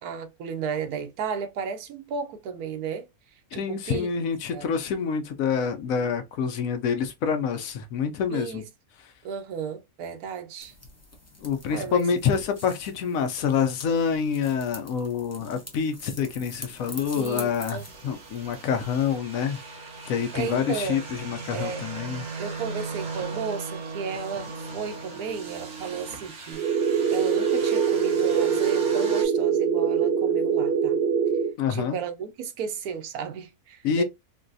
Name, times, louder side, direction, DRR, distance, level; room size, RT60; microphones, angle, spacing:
voice 1, 0.0-3.1 3.5-4.1 4.5-4.8 8.3-8.7 9.2-10.7 11.7-12.0 17.2-18.2 20.3-21.0 21.5-21.9 22.4-31.0 31.7-34.0, right 6 dB, 90° right, 1.2 m, -34 dB
voice 2, 3.5-8.6 11.4-19.6 20.0-22.2 31.6-32.0 33.8-34.0, left 6 dB, 70° left, 0.9 m, -27 dB
sound 1, 10.6-19.2, left 1 dB, 15° left, 0.5 m, -45 dB
sound 2, 16.8-29.2, right 4 dB, 40° right, 0.8 m, -39 dB
sound 3, 26.6-31.5, right 7 dB, 65° right, 1.0 m, -23 dB
3.8 x 2.2 x 2.6 m
omnidirectional pair, 1.6 m